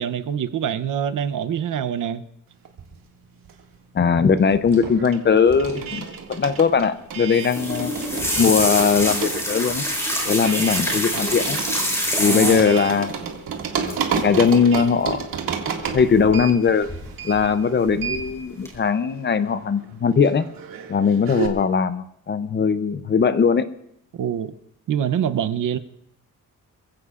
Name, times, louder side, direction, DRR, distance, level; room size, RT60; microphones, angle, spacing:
voice 1, 0.0-2.2 12.2-12.7 24.1-24.5 24.9-25.8, right 9 dB, 65° right, 11 dB, 0.7 m, -25 dB
sound 1, 2.6-3.9 4.2-21.5, right 6 dB, 80° right, 2.1 m, -32 dB
voice 2, 3.9-7.9 8.4-9.8 10.2-11.6 12.2-13.1 13.7-15.3 15.9-16.9 17.2-20.5 20.9-23.7, left 6 dB, 35° left, 12 dB, 0.6 m, -20 dB
sound 2, 4.3-6.0 8.1-8.7, right 4 dB, 40° right, 3.2 m, -36 dB
sound 3, 7.3-12.9 13.9-14.2 14.4-14.8 16.0-16.5 16.9-17.4 17.9-18.3 18.7-18.8, equal, 10° left, 4.3 m, -26 dB
28.0 x 16.0 x 2.5 m, 0.78 s
wide cardioid pair, 170°, 34 cm